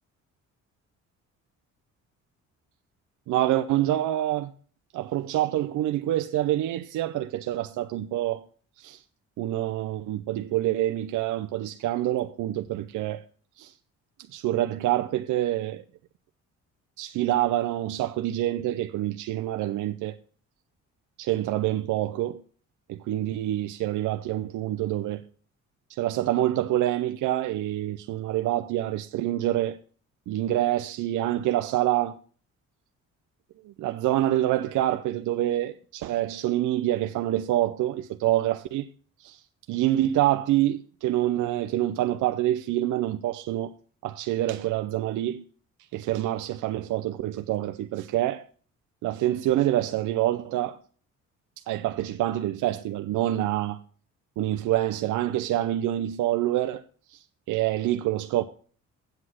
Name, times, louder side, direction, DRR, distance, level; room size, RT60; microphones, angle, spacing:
voice 1, 3.3-4.5 4.9-8.4 8.8-9.0 9.4-13.2 13.6-13.7 14.3-15.8 17.0-20.2 21.2-22.4 22.9-25.2 25.9-29.8 30.3-32.2 33.6-38.9 39.2-39.4 39.7-43.7 44.0-45.4 45.9-48.4 49.0-50.8 51.7-53.8 54.4-56.8 57.1-58.4, right 13 dB, 80° right, 0.6 m, -26 dB
7.9 x 7.8 x 5.7 m
cardioid pair, 90°, 30 cm